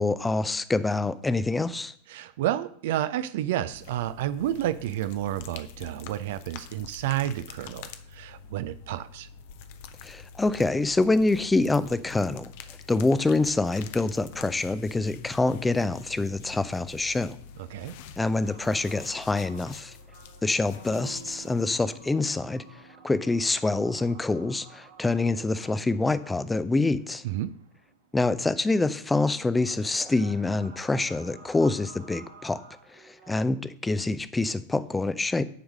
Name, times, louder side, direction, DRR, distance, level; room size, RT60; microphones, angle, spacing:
voice 1, 0.0-1.9 10.0-12.5 12.9-17.4 18.2-19.9 20.4-22.6 23.0-27.2 28.1-32.6 33.0-35.4, left 3 dB, 10° left, 0.5 m, -26 dB
voice 2, 2.1-9.3 17.7-17.9 27.2-27.5, right 12 dB, 55° right, 0.4 m, -30 dB
sound 1, 3.7-22.6, left 6 dB, 50° left, 0.7 m, -47 dB
sound 2, 18.4-33.4, right 4 dB, 70° right, 2.0 m, -53 dB
Electric guitar / Strum, 20.8-25.9, right 3 dB, 75° left, 1.7 m, -52 dB
9.9 x 4.6 x 6.4 m
figure-of-eight pair, 90°, 0 cm